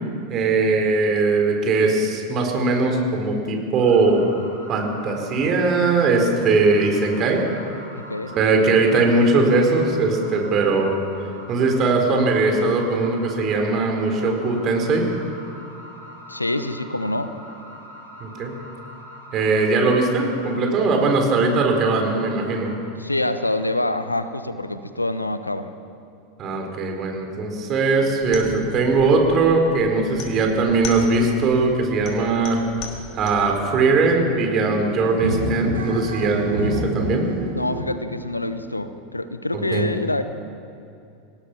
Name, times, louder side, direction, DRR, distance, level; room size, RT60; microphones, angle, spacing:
voice 1, 0.3-4.3 4.7-7.4 8.3-11.0 11.5-15.1 18.2-18.6 19.3-22.7 26.4-32.6 33.2-37.3 39.7-39.9, right 3 dB, 35° right, 2 dB, 4.4 m, -20 dB
sound 1, 3.7-22.7, equal, 90° right, 5.2 m, -43 dB
voice 2, 8.0-8.3 16.3-17.3 23.0-25.7 36.2-36.3 37.5-40.2, left 2 dB, 85° left, 11 dB, 1.0 m, -26 dB
sound 2, 28.2-33.6, left 5 dB, 40° left, 4.4 m, -38 dB
sound 3, 31.9-37.9, right 1 dB, 70° right, 4.7 m, -30 dB
26.5 x 18.0 x 6.1 m, 2.5 s
figure-of-eight pair, 85°, 0 cm